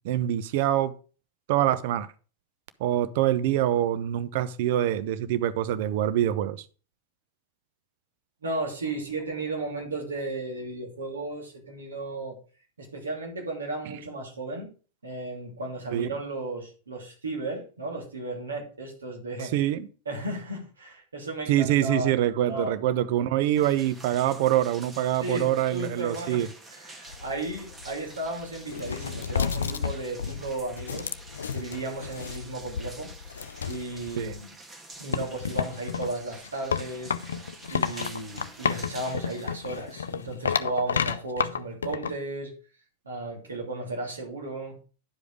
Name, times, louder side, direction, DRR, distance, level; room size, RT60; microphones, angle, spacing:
voice 1, 0.0-0.9 1.5-2.1 2.8-6.6 15.9-16.1 19.5-19.9 21.5-26.5 34.2-34.4, right 12 dB, 50° right, 0.8 m, -25 dB
voice 2, 8.4-12.4 12.8-14.7 15.0-19.5 20.0-22.1 22.5-22.8 25.2-31.1 31.5-33.1 33.7-34.5 35.0-37.1 37.7-42.5 43.0-44.7, right 2 dB, 75° right, 2.9 m, -34 dB
sound 1, 23.5-40.8, right 2 dB, 15° right, 1.5 m, -48 dB
sound 2, 27.1-34.4 35.1-42.1, left 7 dB, 70° left, 0.4 m, -32 dB
10.5 x 5.0 x 4.9 m
figure-of-eight pair, 90°, 0 cm